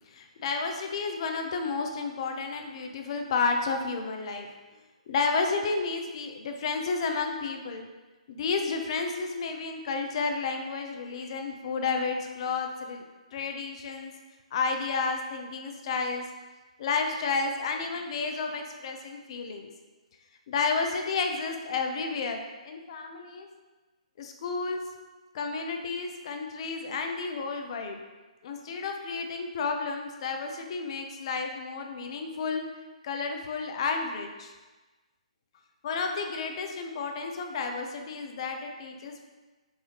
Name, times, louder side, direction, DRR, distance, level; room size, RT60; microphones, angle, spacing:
voice 1, 0.1-4.5 5.1-7.9 8.3-13.0 13.3-14.1 14.5-16.3 16.8-19.7 20.5-23.5 24.2-24.8 25.3-28.0 28.4-32.7 33.0-34.5 35.8-39.2, left 4 dB, 50° left, 4 dB, 0.5 m, -31 dB
4.0 x 2.7 x 2.9 m, 1.2 s
hypercardioid pair, 140°, 4 cm